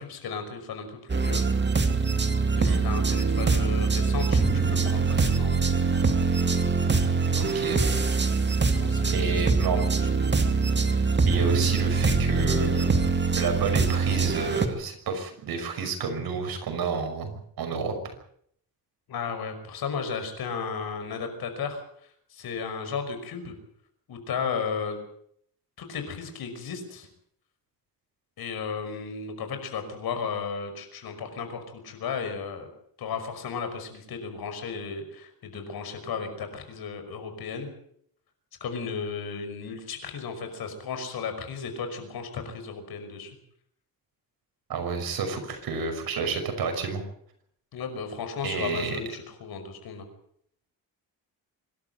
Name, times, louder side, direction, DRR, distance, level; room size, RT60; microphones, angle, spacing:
voice 1, 0.0-1.4 2.5-5.6 8.7-9.8 19.1-21.8 22.3-23.5 24.1-25.0 25.8-27.1 28.4-32.7 33.0-37.7 38.6-43.3 47.7-50.1, left 5 dB, 80° left, 7 dB, 5.7 m, -34 dB
sound 1, 1.1-14.7, right 4 dB, 30° right, 2.4 m, -23 dB
voice 2, 7.3-7.8 9.1-9.9 11.3-13.0 13.4-18.1 44.7-47.0 48.4-49.0, right 4 dB, 75° right, 6 dB, 5.8 m, -30 dB
25.5 x 12.5 x 9.2 m, 0.67 s
cardioid pair, 115°, 36 cm